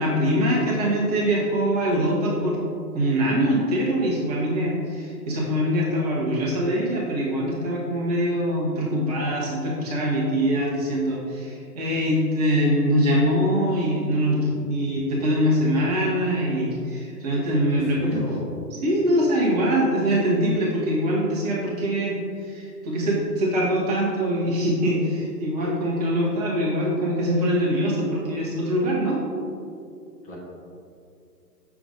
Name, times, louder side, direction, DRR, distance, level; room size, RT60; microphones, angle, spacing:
voice 1, 0.0-2.7 2.9-18.2 18.8-29.2, equal, 25° right, -5 dB, 1.1 m, -23 dB
voice 2, 14.4-15.0 17.7-18.5 30.2-30.3, equal, 20° left, -7 dB, 1.5 m, -37 dB
6.7 x 5.9 x 3.8 m, 2.4 s
figure-of-eight pair, 135°, 49 cm